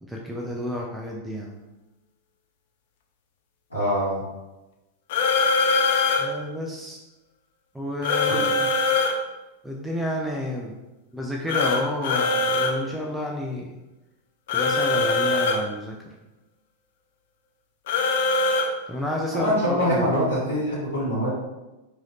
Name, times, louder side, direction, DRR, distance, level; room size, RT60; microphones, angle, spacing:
voice 1, 0.0-1.5 6.2-7.0 7.7-8.7 9.6-10.7 11.1-13.7 14.5-16.0 18.9-20.2, left 1 dB, 5° right, -1 dB, 0.5 m, -30 dB
voice 2, 3.7-4.2 8.3-8.4 19.3-21.3, equal, 85° left, -12 dB, 1.5 m, -24 dB
sound 1, 5.1-6.3 8.0-9.1 11.5-12.7 14.5-15.6 17.9-18.7, left 3 dB, 55° left, 0.5 m, -22 dB
4.7 x 2.8 x 3.1 m, 1.0 s
figure-of-eight pair, 90°, 0 cm